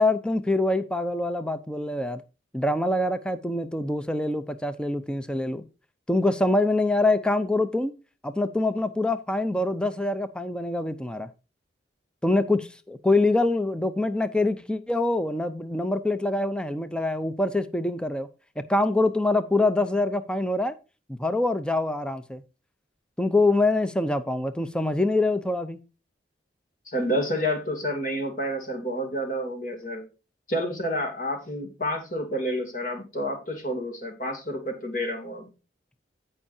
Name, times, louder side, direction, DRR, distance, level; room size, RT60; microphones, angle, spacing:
voice 1, 0.0-2.2 2.5-5.6 6.1-7.9 8.2-11.3 12.2-18.3 18.7-20.7 21.2-22.4 23.2-25.8, left 2 dB, 5° left, 0.5 m, -25 dB
voice 2, 26.9-30.0 30.5-35.5, equal, 45° left, 2.6 m, -29 dB
16.0 x 5.5 x 2.7 m
head